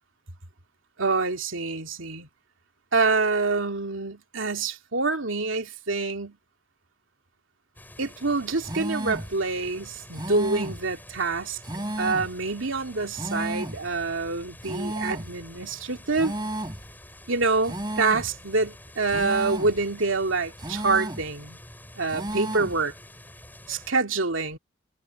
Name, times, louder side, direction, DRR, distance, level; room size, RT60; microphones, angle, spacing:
voice 1, 1.0-2.3 2.9-6.4 8.0-11.6 12.0-16.3 17.3-21.6 22.0-22.9 23.7-24.6, right 3 dB, 90° right, 2.5 m, -26 dB
sound 1, 7.7-23.9, left 1 dB, 10° left, 7.5 m, -48 dB
sound 2, 8.6-9.3 10.1-10.9 11.6-12.4 13.1-13.8 14.6-15.3 16.1-16.8 17.6-18.3 19.1-19.8 20.6-21.3 22.1-22.8, right 1 dB, 20° right, 5.1 m, -33 dB
head